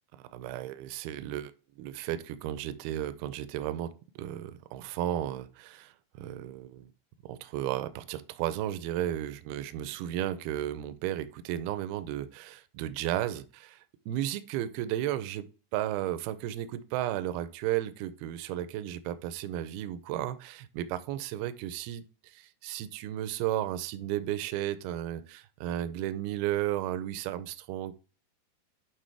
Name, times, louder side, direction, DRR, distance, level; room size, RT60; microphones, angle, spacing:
voice 1, 0.3-1.5 1.8-6.9 7.3-15.5 15.7-27.9, right 12 dB, 80° right, 13 dB, 2.4 m, -34 dB
11.5 x 4.6 x 3.4 m, 0.35 s
omnidirectional pair, 4.7 m